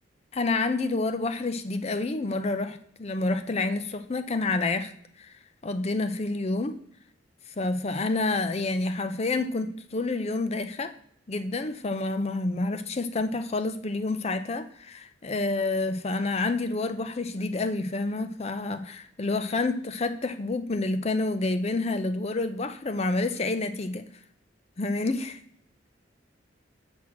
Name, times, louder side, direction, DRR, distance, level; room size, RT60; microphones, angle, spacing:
voice 1, 0.3-4.9 5.2-5.3 5.6-6.8 7.6-10.9 11.3-24.1 24.8-25.4, left 2 dB, 35° left, 0.5 m, -28 dB
6.2 x 6.1 x 7.2 m
head